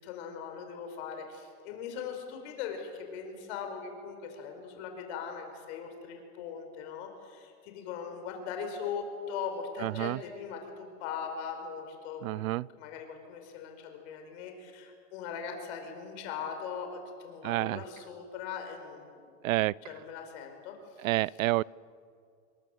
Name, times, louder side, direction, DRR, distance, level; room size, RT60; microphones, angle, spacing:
voice 1, 0.0-12.4 12.8-19.2 19.8-20.8 21.2-21.4, left 6 dB, 50° left, 4 dB, 4.9 m, -40 dB
voice 2, 9.8-10.2 12.2-12.7 17.4-17.8 19.4-19.7 21.0-21.6, right 18 dB, 70° right, 25 dB, 0.6 m, -28 dB
28.0 x 22.5 x 7.9 m, 2.3 s
supercardioid pair, 160°, 42 cm